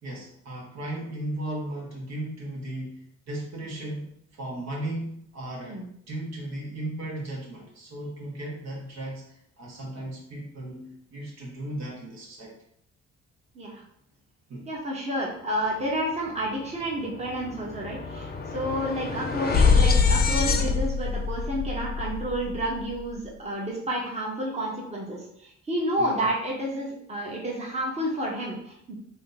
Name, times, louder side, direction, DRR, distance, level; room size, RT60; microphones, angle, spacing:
voice 1, 0.0-5.8 6.1-12.6 14.5-14.7 26.0-26.2, right 1 dB, 60° right, -2 dB, 1.2 m, -36 dB
voice 2, 14.7-28.9, equal, 20° right, -3 dB, 1.0 m, -30 dB
sound 1, 16.4-16.5 16.8-23.1, left 5 dB, 35° left, 0.4 m, -25 dB
2.9 x 2.7 x 3.9 m, 0.72 s
cardioid pair, 90°, 30 cm